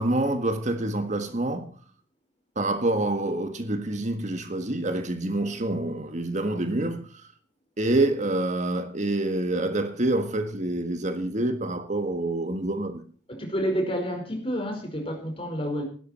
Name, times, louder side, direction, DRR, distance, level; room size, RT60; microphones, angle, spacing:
voice 1, 0.0-1.8 2.5-7.1 7.8-13.0, right 2 dB, 40° right, 1.6 m, -27 dB
voice 2, 13.3-15.8, equal, 30° left, 4.9 m, -29 dB
16.0 x 12.5 x 4.4 m
head